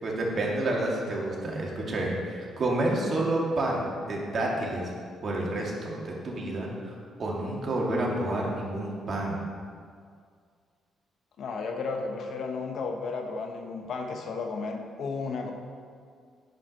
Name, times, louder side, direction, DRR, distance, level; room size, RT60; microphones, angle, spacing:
voice 1, 0.0-4.9 5.2-6.9 7.2-9.4, right 1 dB, 45° right, -2 dB, 2.1 m, -29 dB
voice 2, 11.4-15.5, left 4 dB, 65° left, 4 dB, 1.1 m, -33 dB
9.4 x 4.8 x 6.2 m, 2.1 s
cardioid pair, 90°, 0 cm